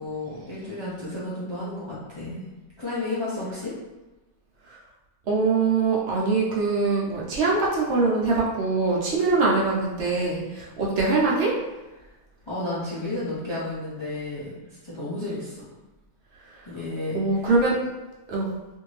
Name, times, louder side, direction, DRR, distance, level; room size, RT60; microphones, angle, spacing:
voice 1, 0.0-2.4 2.8-3.7 12.0-12.1 12.5-14.5 14.8-15.7 16.7-17.2, left 2 dB, 50° left, -9 dB, 0.3 m, -32 dB
voice 2, 5.3-11.5 17.1-17.8 18.3-18.5, right 3 dB, 60° right, -5 dB, 0.9 m, -23 dB
2.6 x 2.6 x 3.1 m, 1.1 s
omnidirectional pair, 1.6 m